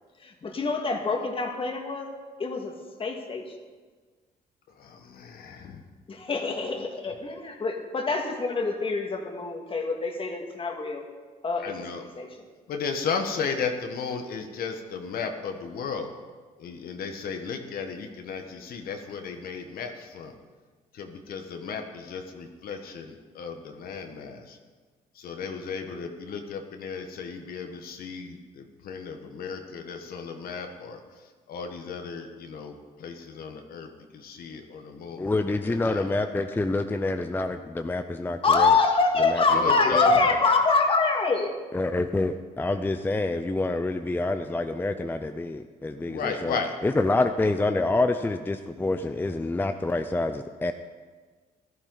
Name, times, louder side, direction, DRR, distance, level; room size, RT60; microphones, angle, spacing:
voice 1, 0.2-2.1 2.4-2.7 3.0-3.4 6.1-11.0 11.4-12.3 38.4-41.5, left 4 dB, 35° left, 3 dB, 1.9 m, -25 dB
voice 2, 4.8-5.8 11.6-12.0 12.7-16.1 16.6-20.3 20.9-24.6 25.1-31.0 31.5-32.7 33.0-37.1 39.5-40.2 46.1-46.7, left 5 dB, 70° left, 5 dB, 1.4 m, -35 dB
voice 3, 35.2-38.7 39.3-39.4 41.7-46.6 46.8-50.7, left 2 dB, 15° left, 8 dB, 0.5 m, -27 dB
15.0 x 12.0 x 4.0 m, 1.4 s
cardioid pair, 105°, 16 cm